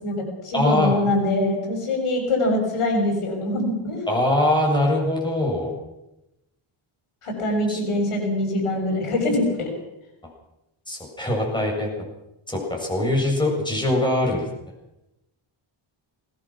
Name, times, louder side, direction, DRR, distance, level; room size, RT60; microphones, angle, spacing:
voice 1, 0.0-4.1 7.2-9.7, left 1 dB, 90° left, 2 dB, 6.8 m, -24 dB
voice 2, 0.5-0.9 4.1-5.7 7.7-7.8 10.9-11.9 12.5-14.4, left 1 dB, 10° left, -1 dB, 7.7 m, -22 dB
21.5 x 20.0 x 6.2 m, 0.89 s
cardioid pair, 95°, 50 cm